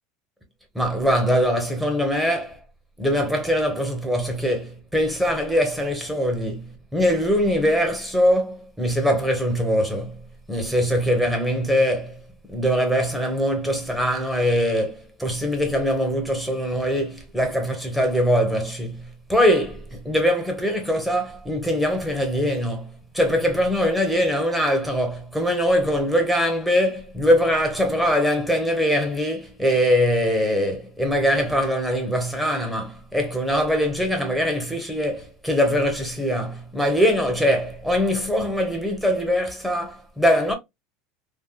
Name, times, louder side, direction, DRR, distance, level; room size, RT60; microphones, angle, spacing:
voice 1, 0.7-2.6 3.0-10.2 10.5-12.2 12.5-40.5, equal, 5° right, 1.0 m, -22 dB
3.5 x 2.2 x 2.3 m
supercardioid pair, 125°, 0 cm